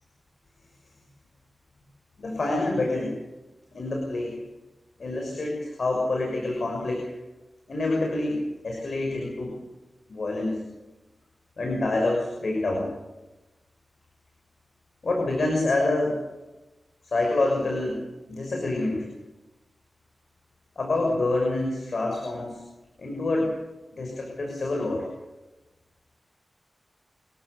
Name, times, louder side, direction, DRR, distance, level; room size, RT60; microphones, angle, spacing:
voice 1, 2.2-3.1 3.7-4.3 5.0-7.0 7.7-9.6 10.1-10.6 11.6-12.9 15.0-16.2 17.0-18.0 18.3-19.1 20.8-22.6 23.0-23.5 24.0-25.1, left 2 dB, 55° left, 0 dB, 6.4 m, -27 dB
28.5 x 14.5 x 7.0 m, 1.1 s
wide cardioid pair, 135°, 0 cm